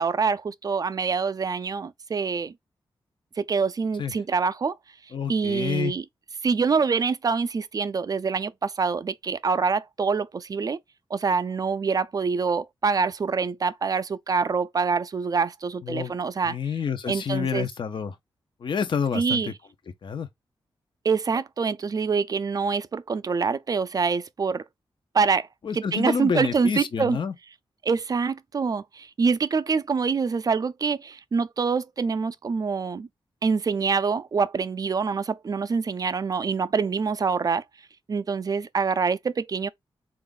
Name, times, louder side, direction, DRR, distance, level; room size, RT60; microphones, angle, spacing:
voice 1, 0.0-2.5 3.4-4.8 5.3-6.0 6.4-10.8 11.1-16.6 17.1-17.7 19.1-19.5 21.0-24.6 25.1-25.5 25.7-27.2 27.8-33.1 33.4-37.6 38.1-39.7, right 5 dB, 40° right, 0.4 m, -25 dB
voice 2, 5.1-5.9 15.8-16.1 16.5-18.2 18.6-19.5 20.0-20.3 25.6-27.3, left 6 dB, 55° left, 0.6 m, -28 dB
3.4 x 2.4 x 3.7 m
wide cardioid pair, 90°, 10 cm